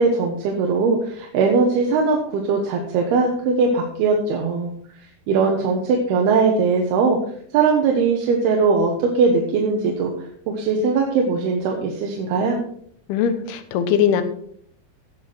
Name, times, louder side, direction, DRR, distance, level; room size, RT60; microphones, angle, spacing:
voice 1, 0.0-4.7 5.3-7.2 7.5-10.1 10.5-12.6, right 4 dB, 80° right, 1 dB, 3.2 m, -20 dB
voice 2, 13.1-14.2, left 8 dB, 80° left, 10 dB, 3.0 m, -20 dB
17.0 x 6.1 x 4.6 m, 0.63 s
omnidirectional pair, 4.5 m